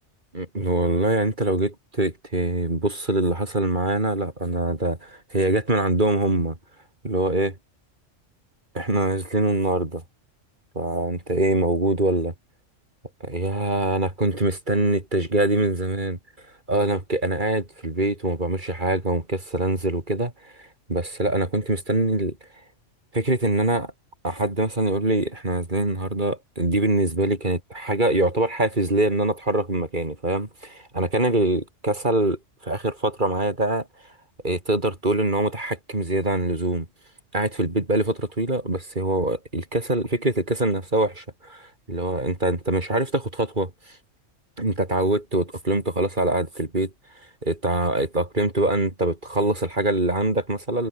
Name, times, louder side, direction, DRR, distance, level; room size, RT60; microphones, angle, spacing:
voice 1, 0.3-6.6 7.0-7.5 8.7-10.0 10.8-12.3 13.2-16.2 16.7-20.3 20.6-22.4 23.1-23.9 24.2-33.9 34.4-36.9 37.3-43.7 44.6-46.9 47.4-50.9, right 2 dB, 40° right, 4.2 m, -24 dB
omnidirectional pair, 1.3 m